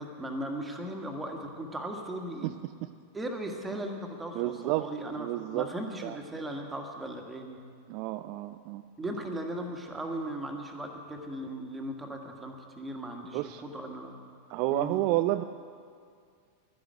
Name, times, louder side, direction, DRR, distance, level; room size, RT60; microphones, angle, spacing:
voice 1, 0.0-2.5 3.1-7.6 9.0-14.2 14.7-15.0, right 1 dB, 10° right, 2 dB, 1.7 m, -37 dB
voice 2, 4.3-4.9 5.2-5.7 6.0-6.2 7.9-8.8 13.3-13.6 14.5-15.4, right 17 dB, 45° right, 9 dB, 0.4 m, -30 dB
11.5 x 10.5 x 9.2 m, 2.2 s
figure-of-eight pair, 90°, 0 cm